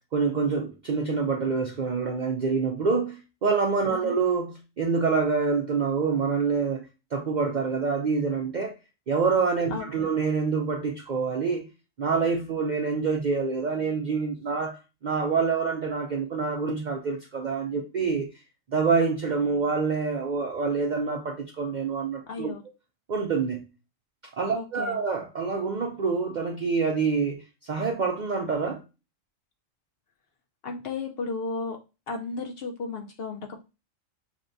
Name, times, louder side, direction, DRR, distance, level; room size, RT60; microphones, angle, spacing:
voice 1, 0.1-6.9 7.1-8.7 9.1-11.7 12.0-18.3 18.7-22.5 23.1-23.7 24.4-28.8, right 5 dB, 60° right, 0.4 m, -26 dB
voice 2, 9.7-10.1 22.3-22.6 24.5-25.0 30.6-31.8 32.1-33.6, left 4 dB, 60° left, 0.7 m, -34 dB
6.1 x 2.2 x 2.6 m
omnidirectional pair, 1.4 m